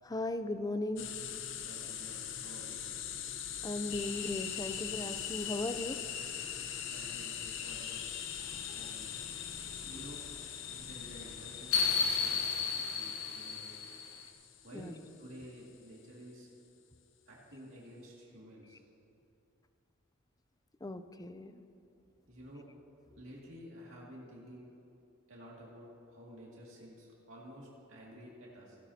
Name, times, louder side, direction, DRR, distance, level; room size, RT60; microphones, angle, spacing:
voice 1, 0.0-1.1 3.6-6.0 8.5-8.9 9.8-10.1 14.7-14.9 20.8-21.6 23.1-23.2, left 2 dB, 20° left, 10 dB, 0.5 m, -38 dB
sound 1, 1.0-15.5, left 9 dB, 65° left, 0.8 m, -43 dB
voice 2, 1.6-2.8 6.9-8.0 8.7-9.2 9.8-10.3 10.8-13.8 14.6-16.5 17.3-18.8 22.3-22.7 23.2-24.7 25.3-28.8, equal, 70° right, -5 dB, 2.3 m, -51 dB
sound 2, 3.9-14.3, left 6 dB, 85° left, 1.0 m, -38 dB
17.0 x 15.5 x 2.8 m, 2.6 s
head